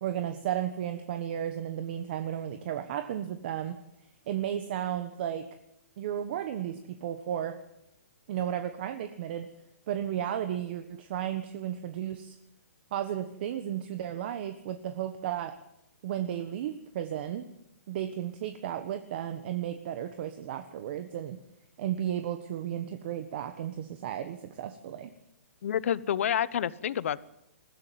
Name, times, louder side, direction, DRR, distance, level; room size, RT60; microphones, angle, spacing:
voice 1, 0.0-3.8 4.3-5.5 6.0-7.6 8.3-9.5 9.9-12.4 12.9-15.6 16.0-17.4 17.9-21.4 21.8-25.1, right 10 dB, 45° right, 9 dB, 1.4 m, -34 dB
voice 2, 25.6-27.2, left 9 dB, 60° left, 18 dB, 1.0 m, -28 dB
21.0 x 15.0 x 9.4 m, 0.85 s
hypercardioid pair, 160°, 8 cm